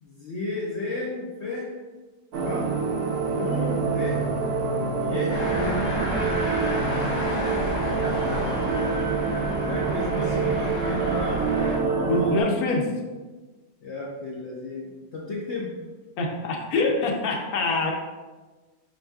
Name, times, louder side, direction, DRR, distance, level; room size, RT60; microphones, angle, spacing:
voice 1, 0.0-1.7 2.4-2.7 3.3-4.2 5.0-5.8 9.6-12.5 13.8-15.7, left 2 dB, 55° left, -4 dB, 0.9 m, -33 dB
Endless Destination, 2.3-12.4, right 4 dB, 65° right, 0.9 m, -26 dB
sound 1, 3.8-12.4, right 17 dB, 85° right, 1.1 m, -37 dB
sound 2, 5.3-11.8, equal, 20° left, 1.4 m, -31 dB
voice 2, 12.1-12.9 16.2-17.9, left 3 dB, 75° left, 1 dB, 1.2 m, -24 dB
5.9 x 3.8 x 2.3 m, 1.3 s
omnidirectional pair, 1.6 m